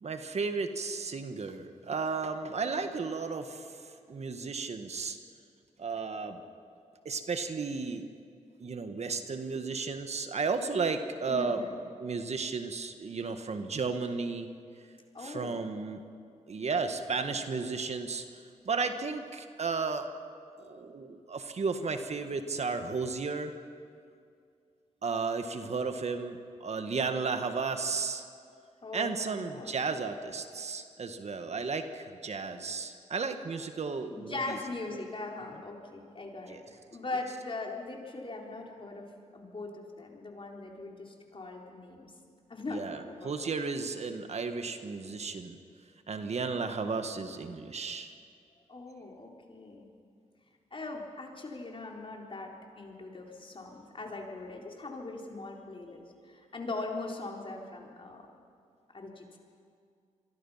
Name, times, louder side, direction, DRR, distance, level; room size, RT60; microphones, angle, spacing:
voice 1, 0.0-5.2 5.8-6.4 7.1-8.1 8.6-11.6 12.0-14.5 15.2-16.0 16.5-18.3 18.7-20.1 20.6-23.5 25.0-28.2 28.9-34.6 36.5-36.6 42.7-45.6 46.1-48.1, right 4 dB, 55° right, 7 dB, 1.6 m, -34 dB
voice 2, 11.3-11.8 15.1-15.6 28.8-29.7 34.1-42.1 42.5-43.5 48.7-49.9 50.7-58.3 58.9-59.4, left 2 dB, 45° left, 0 dB, 4.1 m, -40 dB
27.0 x 23.0 x 5.8 m, 2.3 s
cardioid pair, 60°, 13 cm